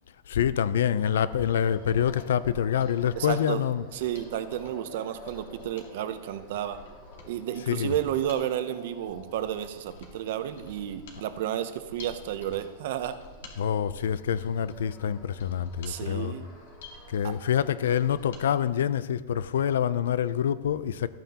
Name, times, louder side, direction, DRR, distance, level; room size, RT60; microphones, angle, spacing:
voice 1, 0.3-3.8 7.7-7.9 13.6-16.3 17.1-21.1, left 9 dB, 85° left, 16 dB, 0.4 m, -26 dB
sound 1, 0.9-18.3, left 2 dB, 25° left, 2.1 m, -52 dB
Mechanisms, 1.5-18.5 18.8-18.9, left 2 dB, 70° left, 1.9 m, -51 dB
voice 2, 3.2-3.6 3.9-6.8 7.3-13.2 15.8-16.5 17.2-17.3, right 11 dB, 50° right, 11 dB, 0.6 m, -32 dB
14.0 x 9.0 x 2.9 m, 1.4 s
supercardioid pair, 180°, 0 cm